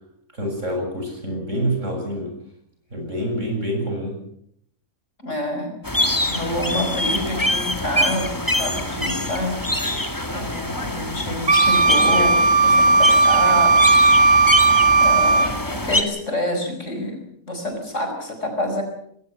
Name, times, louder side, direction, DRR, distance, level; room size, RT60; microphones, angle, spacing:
voice 1, 0.3-2.3 2.9-4.2, right 1 dB, 55° right, 2 dB, 7.5 m, -26 dB
voice 2, 5.2-9.6 10.3-13.8 14.5-18.8, left 1 dB, 55° left, 5 dB, 5.2 m, -28 dB
sound 1, 5.8-16.0, left 1 dB, 15° left, 2.0 m, -24 dB
Wind instrument woodwind instrument, 11.5-15.5, right 3 dB, 30° right, 1.3 m, -15 dB
21.0 x 19.0 x 7.6 m, 0.70 s
omnidirectional pair, 1.5 m